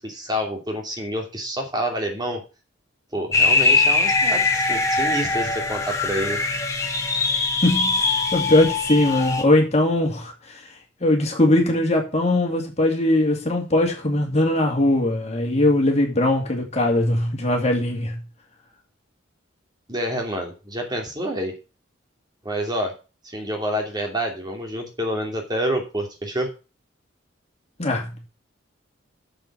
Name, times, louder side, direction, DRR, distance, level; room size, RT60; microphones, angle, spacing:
voice 1, 0.0-2.4 3.1-6.4 19.9-21.5 22.4-22.9 23.2-26.5, equal, 20° right, 2.8 m, -28 dB
sound 1, 3.3-9.4, left 3 dB, 15° left, 1.6 m, -22 dB
voice 2, 7.6-10.7 11.0-18.2 27.8-28.3, left 1 dB, 35° left, 2.4 m, -20 dB
7.5 x 7.1 x 7.5 m
head